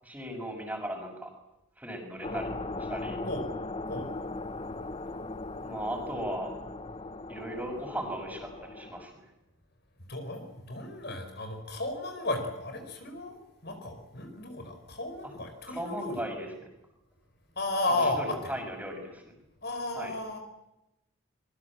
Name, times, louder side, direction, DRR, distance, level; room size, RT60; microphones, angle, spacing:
voice 1, 0.0-1.3 1.8-2.5 2.8-3.2 5.6-6.6 7.3-9.2 15.7-16.7 17.9-19.2 19.9-20.1, equal, 5° right, 3 dB, 6.6 m, -37 dB
sound 1, 2.2-9.0, left 2 dB, 25° left, 0.9 m, -38 dB
voice 2, 10.1-16.2 17.5-18.3 19.6-20.4, left 2 dB, 50° left, 6 dB, 5.0 m, -34 dB
26.0 x 22.5 x 7.6 m, 0.91 s
head